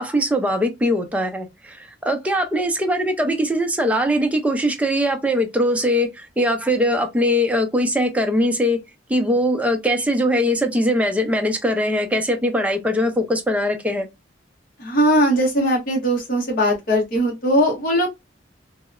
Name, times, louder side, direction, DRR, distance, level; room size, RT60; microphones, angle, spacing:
voice 1, 0.0-8.8 9.1-14.1, equal, 10° right, 0.4 m, -21 dB
voice 2, 14.8-18.1, equal, 50° left, 0.8 m, -19 dB
2.8 x 2.0 x 2.3 m
head